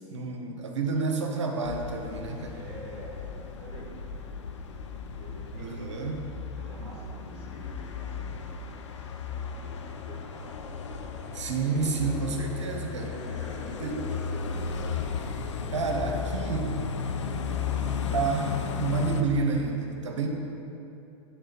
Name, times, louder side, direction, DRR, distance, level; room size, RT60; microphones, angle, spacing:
voice 1, 0.0-2.6 5.6-6.3 11.3-13.2 13.8-14.0 15.7-16.8 18.1-20.3, right 4 dB, 85° right, 3 dB, 1.0 m, -29 dB
sound 1, 1.6-19.2, left 6 dB, 80° left, 0.6 m, -34 dB
voice 2, 2.5-4.4 5.1-6.0 6.6-10.7 11.2-11.3 11.6-12.5 13.1-14.5, right 2 dB, 60° right, -4 dB, 1.4 m, -46 dB
9.7 x 3.6 x 5.9 m, 2.8 s
hypercardioid pair, 100°, 15 cm